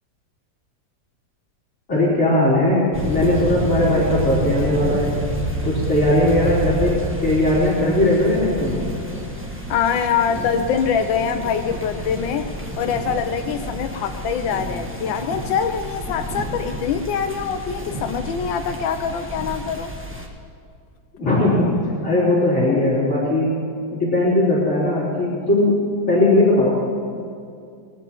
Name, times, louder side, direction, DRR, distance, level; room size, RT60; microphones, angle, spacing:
voice 1, 1.9-5.1 5.6-8.8 17.8-17.9 21.2-21.7 22.0-23.6 23.9-25.8 26.1-26.7, left 1 dB, 40° left, -8 dB, 4.1 m, -18 dB
sound 1, 2.9-20.3, equal, 10° right, 1.2 m, -29 dB
voice 2, 9.7-12.5 12.8-19.9, left 7 dB, 80° left, 6 dB, 1.4 m, -24 dB
21.0 x 19.0 x 3.0 m, 2.3 s
omnidirectional pair, 2.0 m